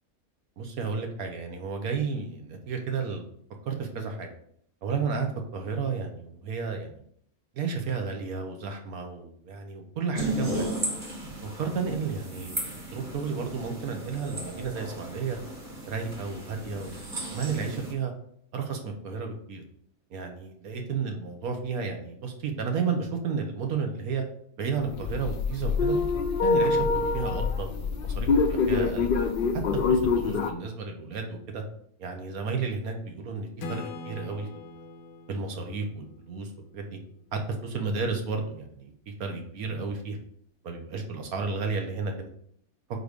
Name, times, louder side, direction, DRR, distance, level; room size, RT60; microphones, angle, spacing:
voice 1, 0.6-3.3 3.6-4.3 4.8-7.0 7.5-10.7 11.4-15.4 15.9-17.0 17.3-18.1 18.5-19.6 20.1-24.2 24.6-26.0 26.4-29.1 29.9-31.6 32.0-34.5 35.3-37.0 37.3-38.9 39.2-40.2 40.6-42.3, right 5 dB, 80° right, 4 dB, 1.5 m, -32 dB
sound 1, 10.1-17.9, right 1 dB, 35° right, 1.5 m, -35 dB
sound 2, 24.9-30.5, left 4 dB, 55° left, 0.6 m, -25 dB
Acoustic guitar / Strum, 33.6-37.2, left 2 dB, 80° left, 1.1 m, -42 dB
4.7 x 4.6 x 5.1 m, 0.65 s
omnidirectional pair, 1.5 m